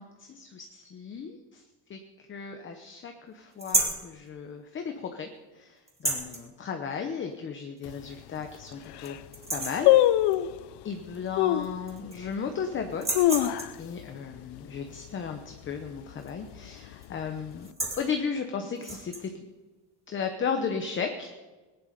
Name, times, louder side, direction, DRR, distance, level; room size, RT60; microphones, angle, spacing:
voice 1, 0.0-1.6 1.9-2.0 2.3-9.2 9.5-10.0 10.8-13.3 13.8-17.7 18.0-19.5 20.1-21.3, left 6 dB, 30° left, 5 dB, 0.9 m, -35 dB
sound 1, 3.6-4.1 5.9-6.4 7.8-7.9 8.3-8.4 8.8-9.1 9.3-9.9 11.3-11.4 11.6-12.3 12.9-13.8 16.2-16.5 16.8-17.1 17.5-18.1 18.8-19.2, right 2 dB, 15° right, 2.1 m, -31 dB
sound 2, 7.8-7.9 8.5-8.6 8.9-9.2 9.9-10.6 11.4-11.8 12.3-12.4 12.9-14.0 14.3-14.4 14.8-15.1 15.5-15.9 16.5-17.3 17.5-17.6, left 14 dB, 70° left, 0.7 m, -23 dB
18.5 x 10.5 x 5.2 m, 1.2 s
cardioid pair, 175°, 41 cm